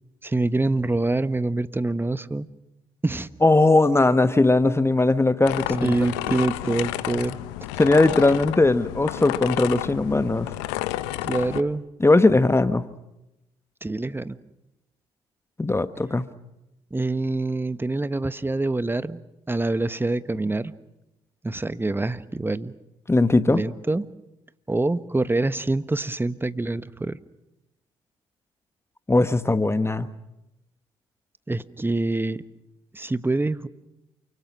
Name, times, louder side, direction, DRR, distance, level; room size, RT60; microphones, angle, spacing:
voice 1, 0.2-2.5 3.0-3.3 5.8-7.4 11.2-11.8 13.8-14.4 16.9-19.2 19.5-20.7 21.4-22.7 23.5-24.1 24.7-27.2 31.5-32.4 32.9-33.7, right 2 dB, 15° right, 14 dB, 1.3 m, -25 dB
voice 2, 3.4-5.9 7.8-10.5 12.0-12.8 15.6-16.3 23.1-23.6 29.1-30.1, left 2 dB, 15° left, 12 dB, 1.3 m, -19 dB
sound 1, 5.4-11.6, left 16 dB, 80° left, 0.9 m, -31 dB
28.5 x 25.0 x 6.1 m, 0.92 s
hypercardioid pair, 50°, 15 cm